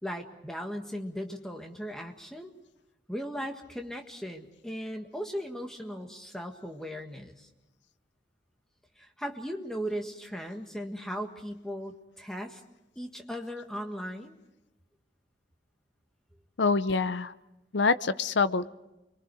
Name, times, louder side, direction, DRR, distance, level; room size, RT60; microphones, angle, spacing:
voice 1, 0.0-2.5 3.1-7.5 9.0-12.6 12.9-14.3, equal, 5° left, 3 dB, 1.7 m, -37 dB
voice 2, 16.6-17.3 17.7-18.7, left 4 dB, 75° left, 13 dB, 0.7 m, -25 dB
30.0 x 23.0 x 4.8 m, 0.97 s
head